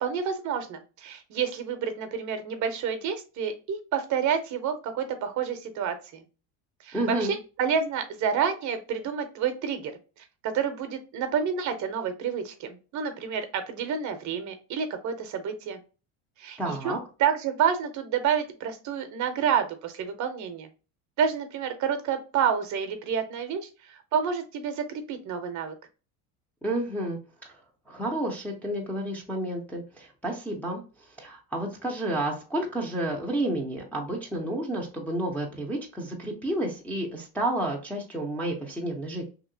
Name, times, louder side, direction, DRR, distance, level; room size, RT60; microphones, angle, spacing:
voice 1, 0.0-6.2 6.8-9.9 10.2-15.8 16.4-20.7 21.2-25.7, right 7 dB, 45° right, 8 dB, 0.6 m, -29 dB
voice 2, 6.9-7.3 16.6-17.0 26.6-27.2 27.4-27.6 27.9-30.8 31.2-39.2, right 1 dB, 5° left, -2 dB, 0.5 m, -30 dB
2.8 x 2.8 x 2.6 m, 0.34 s
cardioid pair, 125°, 42 cm